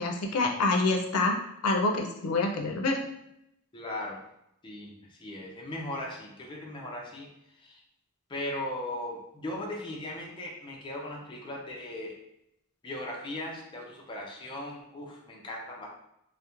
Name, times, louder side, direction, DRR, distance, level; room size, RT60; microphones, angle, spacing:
voice 1, 0.0-3.0, left 2 dB, 90° left, 2 dB, 0.4 m, -27 dB
voice 2, 3.7-4.3 4.6-7.3 7.6-7.8 8.3-12.2 12.8-15.9, left 1 dB, 20° left, -2 dB, 0.4 m, -38 dB
2.4 x 2.1 x 2.8 m, 0.79 s
head